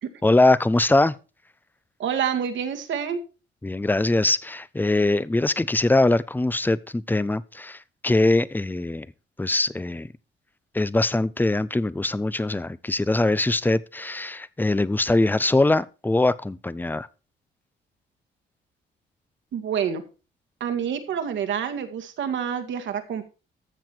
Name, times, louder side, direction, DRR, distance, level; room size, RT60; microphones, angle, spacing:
voice 1, 0.2-1.1 3.6-9.1 9.4-10.1 10.7-17.1, left 2 dB, 10° left, 0.6 m, -22 dB
voice 2, 2.0-3.2 19.5-20.0 20.6-23.3, right 8 dB, 70° right, 2.0 m, -27 dB
14.0 x 7.1 x 4.6 m
cardioid pair, 90°, 20 cm